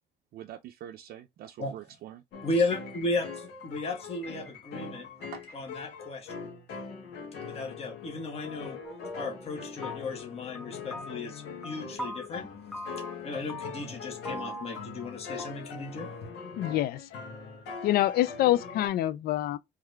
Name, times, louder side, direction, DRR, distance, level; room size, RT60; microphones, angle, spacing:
voice 1, 0.3-2.2 5.2-5.6, right 11 dB, 65° right, 0.5 m, -45 dB
sound 1, 2.3-18.9, left 5 dB, 80° left, 1.8 m, -42 dB
voice 2, 2.4-5.1 5.5-6.3 7.4-8.8 9.1-12.5 13.2-16.1, left 2 dB, 35° left, 1.4 m, -34 dB
sound 2, 8.8-9.5 9.8-10.3 10.5-12.3 12.7-13.2 13.5-14.0 14.2-15.1 15.4-15.5, equal, ahead, 0.8 m, -40 dB
voice 3, 16.6-17.0 17.8-19.6, left 14 dB, 65° left, 0.4 m, -26 dB
3.6 x 3.4 x 3.2 m
cardioid pair, 110°, 17 cm